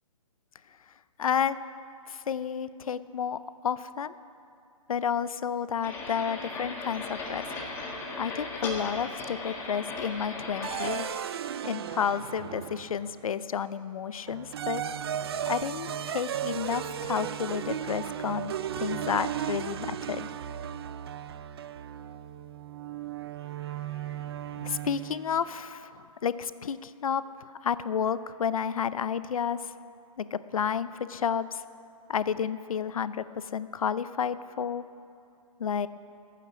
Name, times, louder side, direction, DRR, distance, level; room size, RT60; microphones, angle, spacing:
voice 1, 1.2-1.6 2.1-4.1 4.9-7.5 8.2-11.1 11.6-14.8 15.4-20.3 24.6-29.7 30.2-31.6 32.1-34.8 35.6-35.9, left 7 dB, 75° left, 15 dB, 0.6 m, -31 dB
sound 1, 5.8-11.0, left 3 dB, 15° left, 1.6 m, -37 dB
sound 2, 10.6-13.2 14.3-25.4, right 10 dB, 45° right, 0.5 m, -35 dB
22.5 x 9.1 x 6.1 m, 2.5 s
hypercardioid pair, 160°, 18 cm